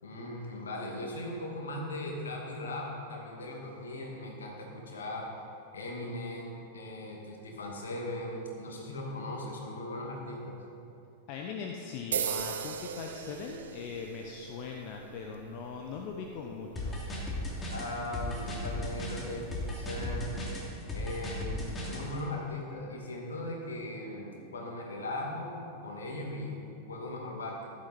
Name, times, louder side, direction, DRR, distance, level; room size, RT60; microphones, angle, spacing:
voice 1, 0.0-5.3 5.7-10.6 17.7-20.3 20.9-26.6 26.9-27.7, left 1 dB, 70° left, 0 dB, 2.3 m, -39 dB
voice 2, 11.3-17.0, left 5 dB, 45° left, 1 dB, 0.9 m, -40 dB
sound 1, 12.1-20.2, right 8 dB, 65° right, 0.7 m, -41 dB
sound 2, 16.8-22.0, left 1 dB, 15° left, 2.9 m, -36 dB
15.0 x 12.0 x 4.3 m, 2.7 s
figure-of-eight pair, 90°, 0 cm